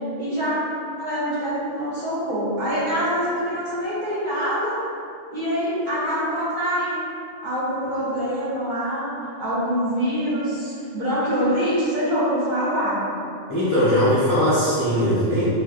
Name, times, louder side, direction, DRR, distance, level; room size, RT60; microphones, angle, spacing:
voice 1, 0.2-0.5 1.0-4.7 5.3-7.1 7.4-9.1 9.4-13.0, equal, 50° right, -10 dB, 0.8 m, -25 dB
voice 2, 13.5-15.4, equal, 25° left, -12 dB, 0.5 m, -20 dB
3.0 x 2.9 x 2.4 m, 2.6 s
omnidirectional pair, 1.2 m